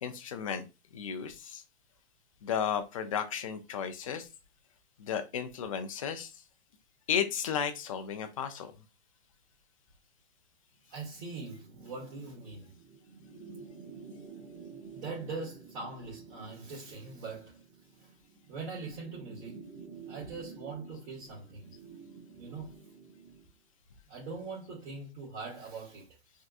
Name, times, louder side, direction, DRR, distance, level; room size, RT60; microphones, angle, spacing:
voice 1, 0.0-0.7 0.9-1.6 2.4-4.3 5.0-6.4 7.1-8.7, left 8 dB, 30° left, 0.4 m, -34 dB
voice 2, 10.9-12.7 14.9-17.6 18.0-18.1 18.5-19.6 20.1-21.7 22.4-22.8 24.1-26.1, right 4 dB, 55° right, 1.9 m, -42 dB
sound 1, 11.1-23.5, right 5 dB, 70° right, 1.4 m, -51 dB
3.5 x 2.5 x 2.4 m
hypercardioid pair, 155°, 34 cm